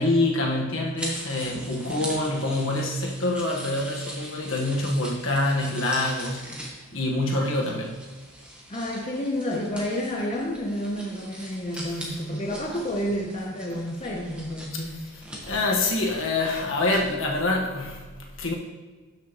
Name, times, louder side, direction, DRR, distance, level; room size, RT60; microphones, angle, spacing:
voice 1, 0.0-8.0 12.1-12.2 14.8-18.5, left 2 dB, 60° left, -1 dB, 1.4 m, -26 dB
sound 1, 1.0-17.1, equal, 5° right, 1.1 m, -41 dB
voice 2, 8.7-15.0, equal, 30° left, -2 dB, 0.8 m, -30 dB
11.5 x 6.4 x 3.1 m, 1.3 s
head